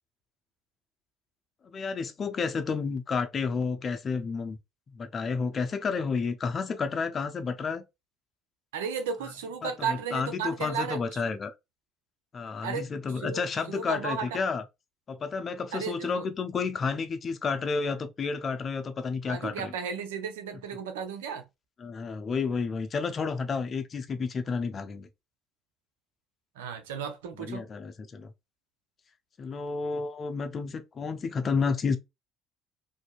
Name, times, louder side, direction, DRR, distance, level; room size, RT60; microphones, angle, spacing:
voice 1, 1.7-4.6 5.0-7.8 9.6-11.5 12.3-14.6 15.1-19.7 21.8-25.1 27.5-28.3 29.4-32.0, left 5 dB, 40° left, 0.6 m, -31 dB
voice 2, 8.7-11.2 12.6-12.9 13.1-13.4 13.7-14.4 15.7-16.3 19.3-21.4 26.6-27.7, right 6 dB, 90° right, 0.5 m, -34 dB
2.7 x 2.6 x 2.3 m
hypercardioid pair, 70°, 0 cm